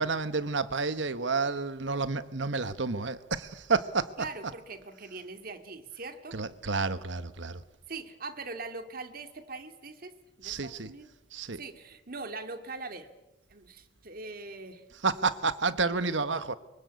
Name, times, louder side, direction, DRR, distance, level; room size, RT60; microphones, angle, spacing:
voice 1, 0.0-4.1 6.3-7.6 10.4-10.9 11.3-11.6 15.0-16.5, right 4 dB, 80° right, 1.3 m, -30 dB
voice 2, 4.2-6.4 7.9-11.1 11.6-13.1 13.5-14.8, right 3 dB, 50° right, 2.3 m, -42 dB
24.0 x 24.0 x 8.3 m
head